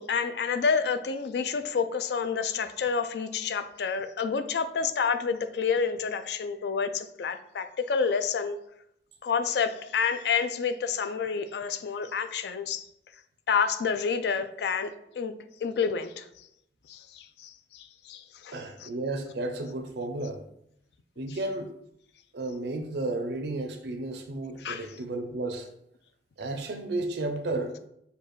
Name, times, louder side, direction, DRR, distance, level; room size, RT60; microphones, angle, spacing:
voice 1, 0.0-8.6 9.2-12.8 13.5-15.3 15.6-16.2 16.9-18.5 18.8-18.9 24.6-24.8, left 6 dB, 65° left, 0.4 m, -29 dB
voice 2, 18.5-20.5 21.2-21.7 22.3-25.7 26.4-27.8, right 2 dB, 70° right, 0.6 m, -33 dB
6.6 x 2.4 x 3.1 m
head